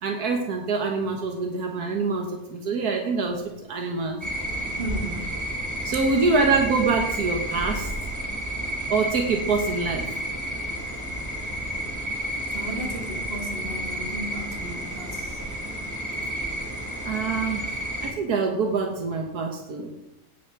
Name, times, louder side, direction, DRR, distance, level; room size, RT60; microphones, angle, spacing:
voice 1, 0.0-4.2 5.8-7.9 8.9-10.1 17.0-19.9, right 4 dB, 90° right, 3 dB, 1.8 m, -25 dB
sound 1, 4.2-18.1, equal, 10° right, 2.0 m, -31 dB
voice 2, 4.8-5.4 12.5-15.3, equal, 40° right, 1 dB, 2.6 m, -35 dB
17.0 x 7.3 x 5.9 m, 0.91 s
omnidirectional pair, 1.6 m